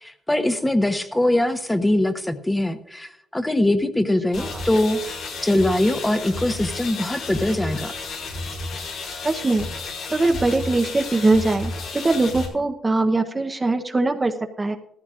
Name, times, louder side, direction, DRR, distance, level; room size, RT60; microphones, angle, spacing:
voice 1, 0.0-5.0 5.4-7.9, left 1 dB, 10° left, 8 dB, 1.0 m, -22 dB
sound 1, 4.3-12.5, left 3 dB, 85° left, 3.9 m, -32 dB
voice 2, 9.2-11.7 12.0-14.8, right 2 dB, 25° right, 6 dB, 0.8 m, -22 dB
16.5 x 14.5 x 2.5 m, 0.81 s
cardioid pair, 90°, 0 cm